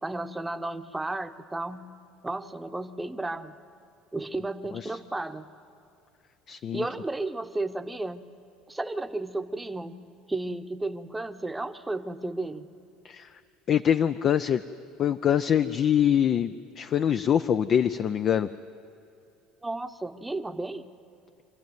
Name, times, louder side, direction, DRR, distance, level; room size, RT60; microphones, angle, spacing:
voice 1, 0.0-1.9 2.2-3.5 4.1-5.5 6.7-8.3 8.7-10.0 10.3-12.7 19.6-20.8, right 2 dB, 10° right, 8 dB, 0.9 m, -33 dB
voice 2, 6.5-6.9 13.0-13.3 13.7-14.6 15.0-18.5, left 9 dB, 45° left, 12 dB, 0.5 m, -24 dB
25.5 x 14.0 x 9.3 m, 2.6 s
supercardioid pair, 100°, 0 cm